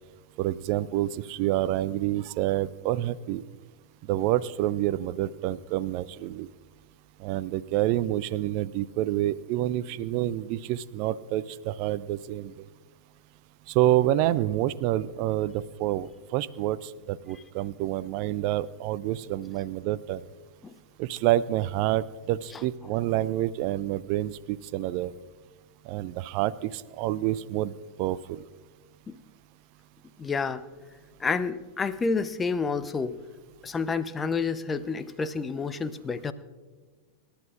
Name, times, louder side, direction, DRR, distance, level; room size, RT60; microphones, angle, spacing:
voice 1, 0.4-3.4 4.1-6.5 7.2-12.7 13.7-20.2 21.0-25.1 25.9-27.7 28.0-28.4, right 14 dB, 45° right, 18 dB, 0.4 m, -28 dB
voice 2, 30.2-30.6 31.2-33.2 33.6-36.3, left 4 dB, 15° left, 13 dB, 0.7 m, -29 dB
26.5 x 11.5 x 2.5 m, 1.4 s
figure-of-eight pair, 90°, 0 cm